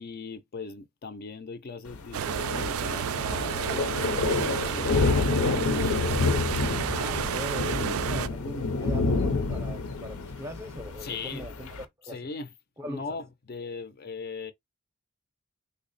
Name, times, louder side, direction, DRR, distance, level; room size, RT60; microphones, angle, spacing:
voice 1, 0.0-6.1 6.8-7.0 11.0-11.5 12.1-12.5 12.8-14.5, left 4 dB, 45° left, 0.4 m, -39 dB
Thunder, 1.9-11.8, left 3 dB, 90° left, 0.6 m, -28 dB
sound 1, 2.1-8.3, right 9 dB, 80° right, 0.3 m, -31 dB
voice 2, 6.9-11.7 12.1-12.2 12.8-13.2, equal, 15° right, 0.5 m, -40 dB
3.3 x 2.0 x 3.9 m
head